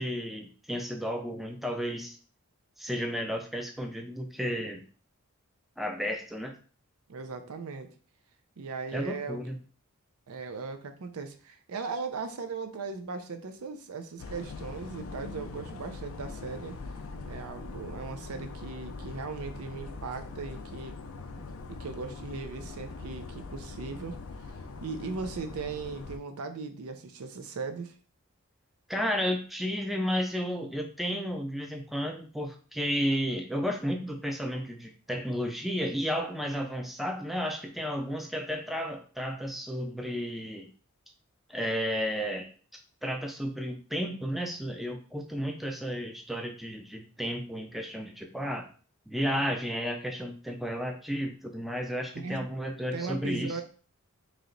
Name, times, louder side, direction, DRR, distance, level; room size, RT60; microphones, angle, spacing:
voice 1, 0.0-2.2 2.8-4.8 5.8-6.6 8.9-9.6 28.9-40.7 41.5-42.5 43.0-48.7 49.1-53.6, equal, ahead, 3 dB, 0.4 m, -32 dB
voice 2, 7.1-7.9 8.6-9.4 10.3-16.8 17.3-20.9 21.7-24.2 24.8-27.9 52.1-52.5 52.9-53.6, right 4 dB, 80° right, 7 dB, 0.5 m, -38 dB
sound 1, 14.2-26.2, left 3 dB, 65° left, 0.4 m, -42 dB
3.1 x 2.9 x 3.8 m, 0.41 s
head